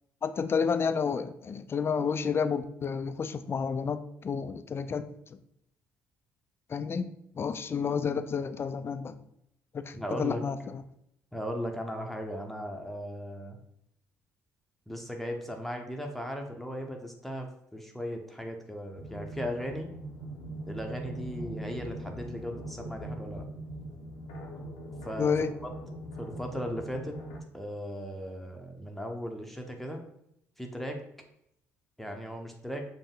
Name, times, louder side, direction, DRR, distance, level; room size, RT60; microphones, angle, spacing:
voice 1, 0.2-5.0 5.3-5.4 6.7-7.1 7.4-9.1 9.7-10.8 25.2-25.5, left 6 dB, 35° left, 11 dB, 0.4 m, -30 dB
voice 2, 9.9-10.4 11.3-13.6 14.9-19.9 20.6-23.5 25.0-25.3 26.2-27.2 27.5-30.0 30.6-31.0 32.0-32.8, equal, 5° left, 2 dB, 0.7 m, -37 dB
sound 1, 19.0-27.4, right 1 dB, 85° left, 0.7 m, -41 dB
5.2 x 2.1 x 3.8 m, 0.76 s
hypercardioid pair, 60°, 7 cm